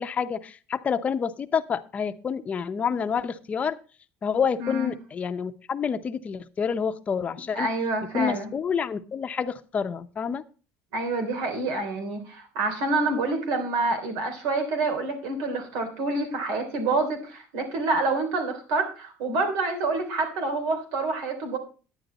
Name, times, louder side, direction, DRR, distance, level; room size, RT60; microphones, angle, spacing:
voice 1, 0.0-3.8 4.2-7.7 8.1-10.4, left 6 dB, 25° left, 9 dB, 0.7 m, -28 dB
voice 2, 4.6-4.9 7.5-8.5 10.9-21.6, right 3 dB, 85° right, 6 dB, 3.3 m, -27 dB
10.5 x 9.7 x 4.0 m, 0.36 s
cardioid pair, 155°, 6 cm